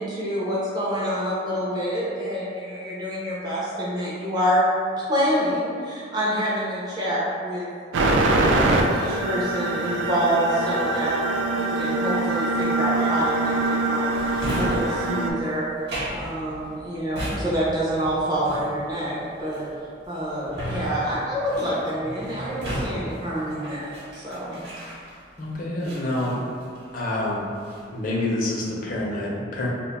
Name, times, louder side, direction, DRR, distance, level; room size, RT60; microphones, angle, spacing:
voice 1, 0.0-4.6 5.0-7.7 7.9-11.2 11.5-15.7 16.1-19.6 20.1-24.6, equal, 20° right, -8 dB, 0.5 m, -27 dB
sound 1, 7.9-15.3, right 2 dB, 85° right, 0.3 m, -23 dB
Drawer open or close, 14.1-25.4 25.8-27.1 27.4-28.0, equal, 60° right, 0.9 m, -34 dB
voice 2, 25.4-26.3 26.9-27.5 27.9-29.7, left 1 dB, 45° left, -4 dB, 0.5 m, -27 dB
2.4 x 2.2 x 3.9 m, 2.3 s
head